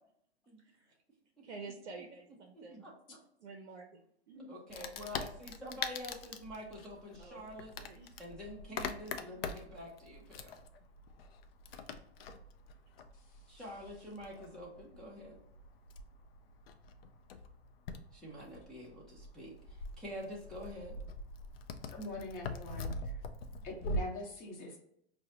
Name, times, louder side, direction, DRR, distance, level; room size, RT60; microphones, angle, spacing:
voice 1, 0.6-1.0 1.4-2.9 3.4-4.0 4.3-4.5 7.2-8.2, right 3 dB, 65° right, 3 dB, 0.6 m, -50 dB
voice 2, 2.5-3.2 4.5-7.7 8.2-10.5 13.5-15.4 18.1-21.0, equal, ahead, -7 dB, 0.5 m, -47 dB
Wood, 4.7-24.0, left 3 dB, 60° left, 0.5 m, -44 dB
voice 3, 21.9-23.2 23.6-24.8, left 1 dB, 25° left, -1 dB, 1.0 m, -43 dB
4.7 x 2.2 x 2.7 m, 0.71 s
hypercardioid pair, 130°, 33 cm